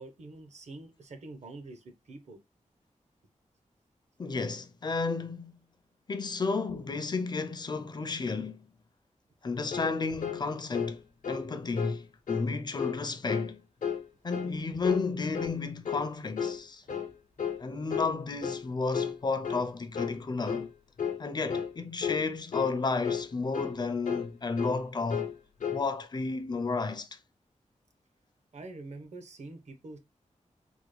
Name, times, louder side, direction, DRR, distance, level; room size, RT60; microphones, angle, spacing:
voice 1, 0.0-2.4 16.8-16.9 28.5-30.0, right 2 dB, 65° right, 0.7 m, -46 dB
voice 2, 4.2-5.6 6.1-8.6 9.4-11.0 11.3-13.6 14.2-16.8 17.6-20.7 21.2-25.3 25.7-27.2, left 4 dB, 35° left, 0.4 m, -32 dB
sound 1, 9.7-9.9 10.2-10.4 10.7-11.0 11.2-11.5 11.8-12.0 12.3-12.5 12.8-13.0 13.3-13.5 13.8-14.0 14.3-14.5 14.8-15.1 15.3-15.6 15.8-16.1 16.4-16.6 16.9-17.1 17.4-17.6 17.9-18.1 18.4-18.6 18.9-19.2 19.4-19.7 19.9-20.2 20.5-20.7 21.0-21.2 21.5-21.7 22.0-22.2 22.5-22.7 23.0-23.3 23.5-23.8 24.0-24.3 24.6-24.8 25.1-25.3 25.6-25.8, left 7 dB, 90° left, 0.7 m, -33 dB
3.4 x 2.1 x 3.1 m
wide cardioid pair, 135°, 13 cm